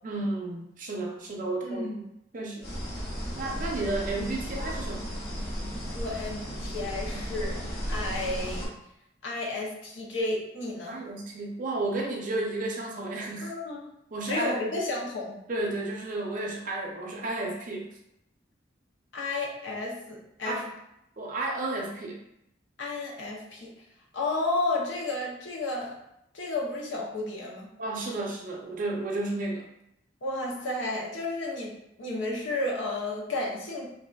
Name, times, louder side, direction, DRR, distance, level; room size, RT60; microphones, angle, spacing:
voice 1, 0.0-2.0 2.3-2.7 3.3-5.0 10.9-13.5 14.1-14.7 15.5-17.9 20.4-20.6 21.2-22.2 27.8-29.7, right 2 dB, 45° right, 0 dB, 0.5 m, -32 dB
voice 2, 1.6-2.1 5.9-7.6 7.9-8.7 9.2-11.0 13.4-13.9 14.2-15.4 19.1-20.6 22.8-23.7 24.1-25.9 26.3-27.7 30.2-31.7 32.0-33.9, left 2 dB, 80° left, -2 dB, 0.6 m, -32 dB
sound 1, 2.6-8.7, equal, 55° left, 1.4 m, -34 dB
3.3 x 2.5 x 2.2 m, 0.81 s
head